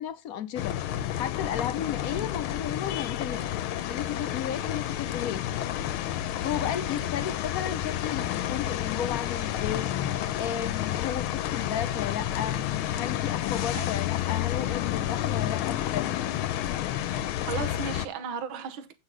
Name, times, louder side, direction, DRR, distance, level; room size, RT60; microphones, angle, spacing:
voice 1, 0.0-3.5 3.9-5.4 6.2-12.6 12.9-16.2, left 9 dB, 65° left, 0.9 m, -34 dB
sound 1, 0.6-18.1, left 12 dB, 85° left, 1.6 m, -30 dB
voice 2, 17.2-18.9, right 7 dB, 75° right, 1.9 m, -35 dB
8.3 x 6.3 x 5.0 m
omnidirectional pair, 2.2 m